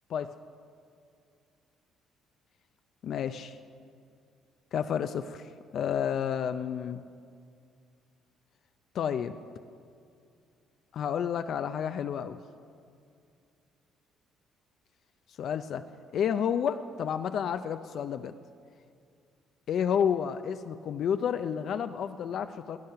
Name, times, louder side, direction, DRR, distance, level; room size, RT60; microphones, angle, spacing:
voice 1, 3.0-3.6 4.7-7.1 8.9-9.3 10.9-12.4 15.4-15.8 16.1-18.3 19.7-22.8, left 8 dB, 50° left, 9 dB, 0.4 m, -30 dB
18.0 x 11.5 x 5.7 m, 2.3 s
cardioid pair, 155°, 0 cm